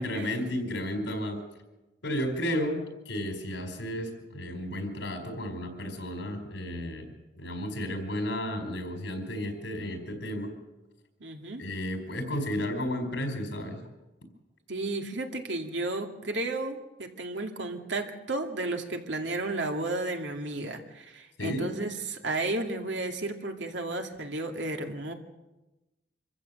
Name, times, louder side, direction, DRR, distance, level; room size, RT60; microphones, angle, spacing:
voice 1, 0.0-1.4 2.0-7.1 7.4-10.5 11.6-13.8 21.4-21.6, equal, 85° left, 5 dB, 4.6 m, -33 dB
voice 2, 11.2-11.6 14.7-25.1, right 2 dB, 75° right, 3 dB, 2.4 m, -33 dB
25.5 x 15.0 x 7.7 m, 1.1 s
head